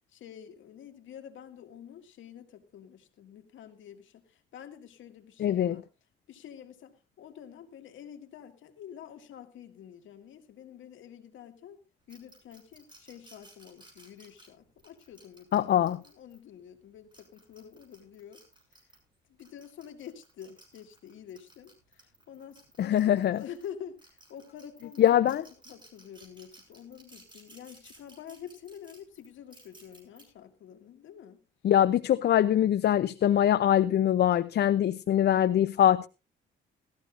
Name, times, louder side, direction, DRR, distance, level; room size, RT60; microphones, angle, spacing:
voice 1, 0.1-5.8 6.3-11.8 12.1-18.4 19.4-25.4 25.7-31.4, left 9 dB, 75° left, 7 dB, 2.1 m, -48 dB
voice 2, 5.4-5.8 15.5-16.0 22.8-23.4 25.0-25.4 31.6-36.1, left 11 dB, 55° left, 14 dB, 0.6 m, -23 dB
sound 1, 12.1-16.4 16.9-19.0 19.4-23.7 24.0-30.2, right 2 dB, 25° right, 7.0 m, -56 dB
19.0 x 14.0 x 2.5 m, 0.30 s
cardioid pair, 90°, 20 cm